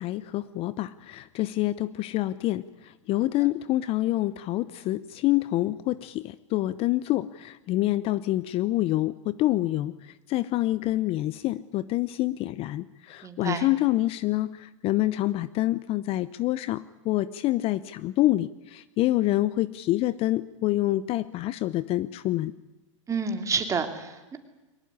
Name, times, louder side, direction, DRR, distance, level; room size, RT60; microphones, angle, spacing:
voice 1, 0.0-2.6 3.1-9.9 10.3-22.5, left 16 dB, 35° left, 17 dB, 0.7 m, -27 dB
voice 2, 13.2-13.7 23.1-24.4, right 5 dB, 20° right, 6 dB, 3.0 m, -29 dB
23.0 x 18.5 x 9.7 m, 1.1 s
hypercardioid pair, 115°, 16 cm